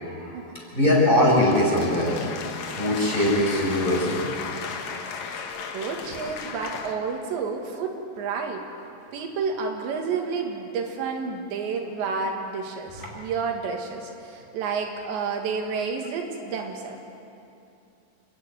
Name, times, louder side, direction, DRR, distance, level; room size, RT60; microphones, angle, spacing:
voice 1, 0.7-2.1 2.7-4.2, left 1 dB, 10° left, -4 dB, 5.3 m, -21 dB
sound 1, 1.1-6.9, left 6 dB, 65° left, 1.8 m, -35 dB
voice 2, 5.7-8.6 9.1-17.0, right 5 dB, 85° right, 2 dB, 4.1 m, -30 dB
29.0 x 12.0 x 9.5 m, 2.7 s
omnidirectional pair, 5.0 m